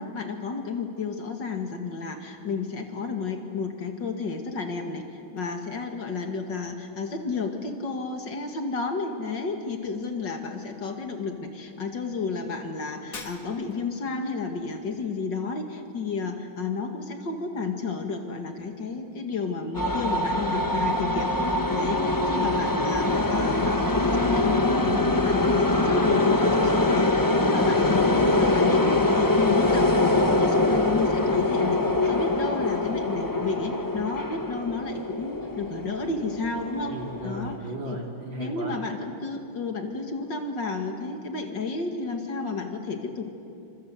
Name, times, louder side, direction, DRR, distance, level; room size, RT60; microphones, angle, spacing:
voice 1, 0.0-5.0 5.3-31.8 32.0-36.9 37.2-37.5 37.8-38.0 38.4-43.3, left 4 dB, 60° left, 4 dB, 2.8 m, -31 dB
Shatter, 13.1-13.9, left 4 dB, 40° left, 2.4 m, -41 dB
sound 1, 19.7-37.5, left 2 dB, 20° left, 0.6 m, -23 dB
voice 2, 36.7-38.8, right 2 dB, 65° right, 1 dB, 4.0 m, -36 dB
28.5 x 26.0 x 8.1 m, 2.6 s
omnidirectional pair, 2.3 m